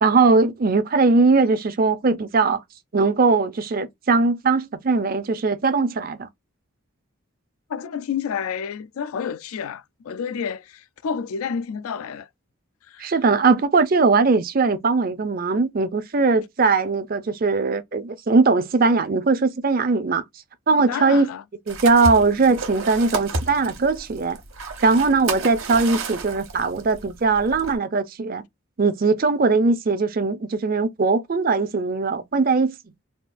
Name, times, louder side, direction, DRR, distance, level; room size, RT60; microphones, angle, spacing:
voice 1, 0.0-2.6 2.9-6.3 13.0-20.2 20.7-21.3 21.7-24.4 24.8-28.4 28.8-32.8, right 4 dB, 40° right, 0.5 m, -20 dB
voice 2, 7.7-12.3 12.9-13.1 20.9-21.4, left 7 dB, 80° left, 0.3 m, -30 dB
sound 1, 21.7-27.8, right 3 dB, 70° right, 1.1 m, -32 dB
3.6 x 2.4 x 2.4 m
head